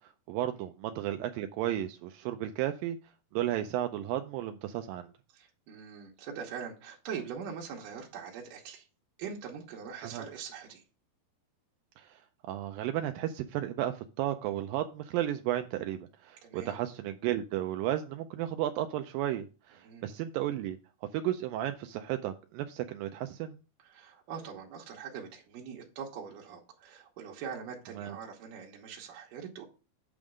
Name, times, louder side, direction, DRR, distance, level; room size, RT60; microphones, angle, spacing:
voice 1, 0.3-3.0 3.3-5.1 10.0-10.2 12.0-12.1 12.5-20.8 21.1-23.6 28.0-28.2, right 12 dB, 85° right, 2.0 m, -33 dB
voice 2, 5.3-8.9 9.2-10.8 16.4-16.8 19.8-20.1 23.8-29.6, right 7 dB, 65° right, 2.5 m, -42 dB
8.7 x 3.6 x 6.2 m
omnidirectional pair, 4.6 m